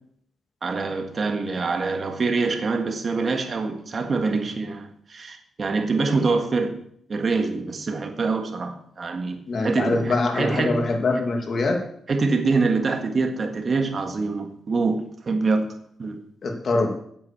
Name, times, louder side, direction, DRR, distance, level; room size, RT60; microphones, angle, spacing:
voice 1, 0.6-6.8 7.1-10.9 12.1-15.7 16.0-16.2, right 4 dB, 40° right, 1.7 m, -25 dB
voice 2, 9.5-11.8 16.4-16.9, left 3 dB, 50° left, 2.3 m, -23 dB
8.8 x 8.1 x 6.4 m
cardioid pair, 90°, 0 cm